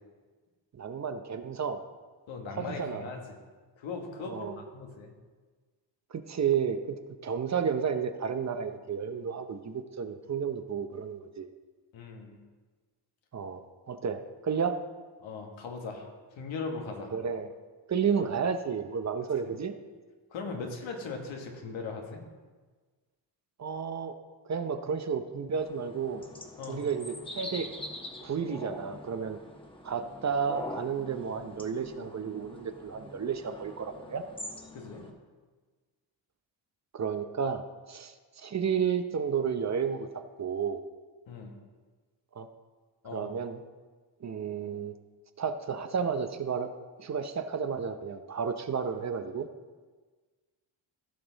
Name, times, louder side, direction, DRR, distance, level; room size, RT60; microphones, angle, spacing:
voice 1, 0.7-1.8 2.6-3.1 4.3-4.5 6.1-11.5 13.3-13.6 13.9-14.8 17.1-17.5 17.9-19.7 20.6-20.7 23.6-24.1 24.5-26.2 26.7-27.7 28.2-29.4 29.8-34.2 36.9-40.1 40.4-40.8 42.4-42.5 43.1-43.6 44.2-44.9 45.4-46.7 47.0-49.5, right 6 dB, 35° right, 8 dB, 0.7 m, -32 dB
voice 2, 2.3-3.4 3.8-5.1 11.9-12.4 15.2-17.1 20.3-22.2 26.6-26.9 34.7-35.1 41.3-41.5 43.0-43.3, left 4 dB, 85° left, 2 dB, 1.6 m, -39 dB
sound 1, 25.5-35.1, left 1 dB, 10° left, 1.2 m, -44 dB
15.0 x 6.0 x 4.0 m, 1.4 s
cardioid pair, 85°, 46 cm